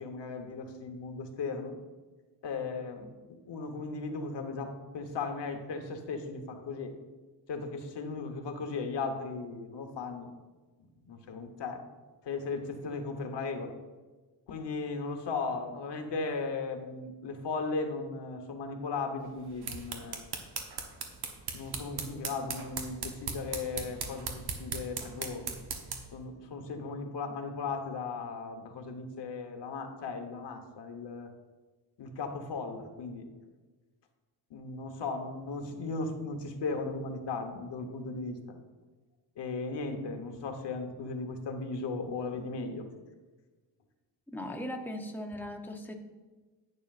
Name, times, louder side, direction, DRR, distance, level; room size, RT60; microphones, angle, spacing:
voice 1, 0.0-1.8 2.4-3.1 3.5-6.9 7.5-10.3 11.0-11.8 12.2-13.7 14.5-20.2 21.5-25.5 26.1-31.3 32.0-33.3 34.5-38.6 39.4-42.8, left 4 dB, 80° left, 5 dB, 1.2 m, -37 dB
sound 1, 19.4-26.2, right 5 dB, 70° right, 1.1 m, -39 dB
voice 2, 44.3-45.9, left 1 dB, 5° left, 3 dB, 0.7 m, -38 dB
11.0 x 8.9 x 2.5 m, 1.3 s
wide cardioid pair, 160°, 41 cm